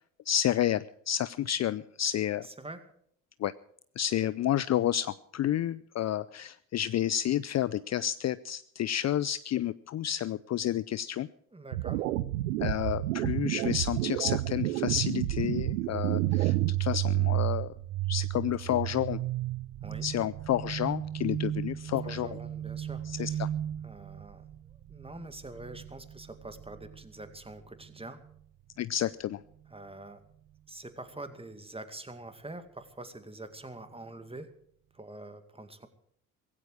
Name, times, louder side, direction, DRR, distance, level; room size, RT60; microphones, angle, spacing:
voice 1, 0.3-2.5 3.4-3.5 4.0-11.3 12.6-17.7 18.1-19.2 20.0-22.3 23.2-23.5 28.8-29.4, left 11 dB, 40° left, 17 dB, 0.5 m, -30 dB
voice 2, 2.4-2.8 11.5-12.1 19.8-20.1 22.0-23.5 23.8-28.2 29.7-30.2 30.7-34.5 34.9-35.9, right 2 dB, 15° right, 9 dB, 2.2 m, -45 dB
sound 1, 11.7-16.7, right 15 dB, 85° right, 0.7 m, -30 dB
sound 2, 15.5-27.0, right 15 dB, 50° right, 0.7 m, -33 dB
16.5 x 16.0 x 4.9 m, 0.65 s
hypercardioid pair, 55°, 42 cm